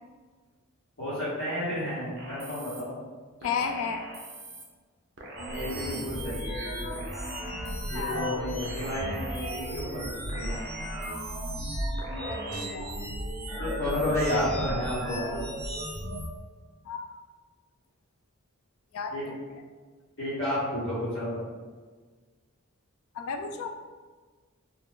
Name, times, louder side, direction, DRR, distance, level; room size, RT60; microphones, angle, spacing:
voice 1, 1.0-3.0 5.3-7.0 7.9-10.5 12.1-12.2 13.5-15.4 19.1-19.3 20.2-21.4, left 1 dB, 55° left, -13 dB, 1.1 m, -32 dB
sound 1, 2.2-2.8 3.4-4.6 5.2-6.4 6.9-8.1 8.6-9.8 10.3-11.5 12.0-12.6, right 1 dB, 45° right, 0.5 m, -43 dB
voice 2, 3.4-4.0 7.9-8.4 12.3-13.1 16.9-17.1 18.9-19.1 23.1-23.7, left 6 dB, 75° left, 5 dB, 0.3 m, -33 dB
sound 2, 5.4-16.3, equal, 30° right, 1.2 m, -35 dB
2.4 x 2.3 x 3.6 m, 1.4 s
head